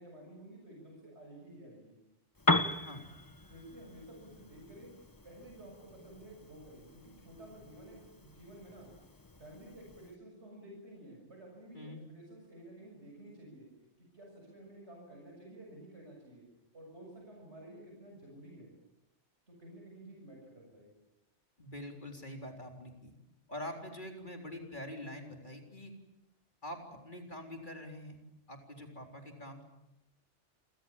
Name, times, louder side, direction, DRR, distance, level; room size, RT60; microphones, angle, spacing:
voice 1, 0.0-2.0 3.5-4.9 5.2-8.9 9.4-13.7 14.0-16.5 16.7-18.7 19.5-20.9, right 1 dB, 65° right, 0 dB, 7.4 m, -52 dB
Piano, 2.3-10.2, left 2 dB, 20° left, 1.0 m, -38 dB
voice 2, 21.6-23.1 23.5-25.9 26.6-28.2 28.5-29.6, left 1 dB, 40° left, 2 dB, 4.1 m, -45 dB
29.0 x 26.0 x 7.3 m, 0.90 s
omnidirectional pair, 1.2 m